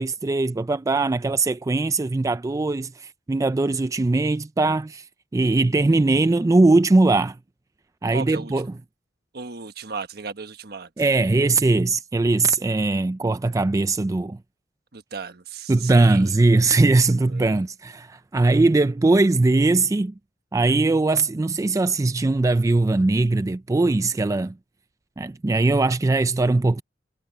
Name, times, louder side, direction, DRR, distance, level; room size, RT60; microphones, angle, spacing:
voice 1, 0.0-5.0 5.3-7.4 8.0-8.8 11.0-14.4 15.7-20.1 20.5-24.5 25.2-26.8, right 2 dB, 20° right, 0.3 m, -20 dB
voice 2, 8.1-8.5 9.3-10.9 14.9-16.3 17.2-17.6, right 5 dB, 60° right, 1.3 m, -35 dB
head